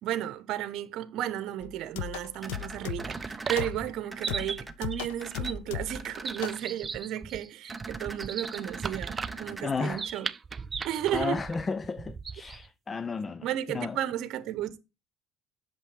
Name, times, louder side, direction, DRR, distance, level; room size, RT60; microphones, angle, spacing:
voice 1, 0.0-10.3 10.8-11.4 13.4-14.8, right 12 dB, 65° right, 0.9 m, -33 dB
sound 1, 1.6-3.2 3.6-4.0 4.3-6.1 6.4-6.7, left 13 dB, 90° left, 0.4 m, -37 dB
sound 2, 2.4-3.6 4.1-4.7 5.2-5.5 5.9-6.6 7.7-9.6, right 3 dB, 10° right, 0.9 m, -41 dB
sound 3, 2.4-12.7, right 5 dB, 30° right, 0.5 m, -38 dB
voice 2, 9.6-10.0 11.1-14.0, left 4 dB, 25° left, 0.4 m, -33 dB
8.3 x 6.8 x 3.2 m
supercardioid pair, 95°, 0 cm